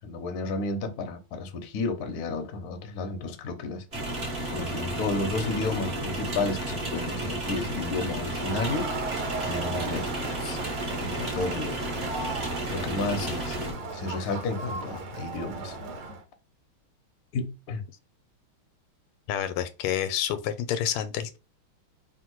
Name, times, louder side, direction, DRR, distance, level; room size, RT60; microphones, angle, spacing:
voice 1, 0.0-3.8 4.5-8.9 9.4-10.6 11.0-11.8 12.7-15.7 17.3-17.8, left 3 dB, 65° left, 1.0 m, -32 dB
sound 1, 3.9-13.7, right 1 dB, 35° right, 1.4 m, -32 dB
Crowd, 8.3-16.2, right 3 dB, 65° right, 1.7 m, -36 dB
voice 2, 19.3-21.4, left 10 dB, 85° left, 1.5 m, -29 dB
3.6 x 2.5 x 4.5 m
omnidirectional pair, 2.4 m